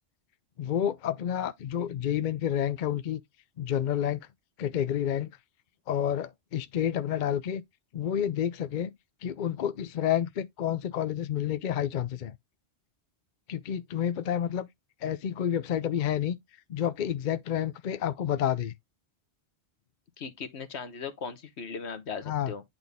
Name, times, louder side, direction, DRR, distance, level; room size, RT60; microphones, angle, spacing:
voice 1, 0.6-3.2 3.6-4.2 4.6-5.3 5.9-7.6 7.9-8.9 9.2-12.3 13.5-14.7 15.0-16.4 16.7-18.7 22.3-22.5, left 10 dB, 55° left, 0.6 m, -29 dB
voice 2, 20.2-22.6, left 5 dB, 75° left, 1.3 m, -38 dB
8.9 x 4.0 x 3.5 m
omnidirectional pair, 1.1 m